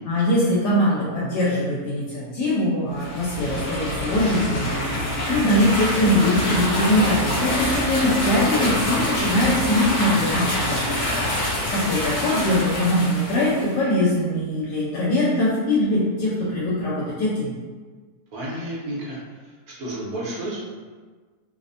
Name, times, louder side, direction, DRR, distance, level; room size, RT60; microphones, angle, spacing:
voice 1, 0.1-11.2 11.7-17.5, left 1 dB, 75° left, -7 dB, 1.1 m, -22 dB
sound 1, 2.9-13.7, left 1 dB, 45° left, 1.1 m, -25 dB
voice 2, 18.3-19.2 19.4-20.6, right 1 dB, 65° right, -6 dB, 1.0 m, -31 dB
2.9 x 2.1 x 2.5 m, 1.4 s
omnidirectional pair, 1.8 m